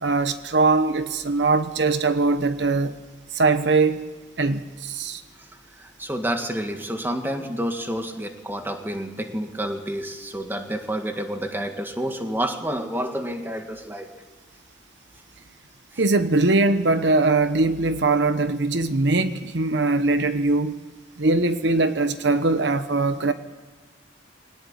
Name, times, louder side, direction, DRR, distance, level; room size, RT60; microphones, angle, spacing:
voice 1, 0.0-3.0 3.3-4.1 4.4-5.2 16.0-20.8 21.2-23.3, right 3 dB, 65° right, 1.0 m, -21 dB
voice 2, 5.8-14.1, right 1 dB, 10° right, 1.8 m, -29 dB
22.0 x 18.5 x 8.8 m
head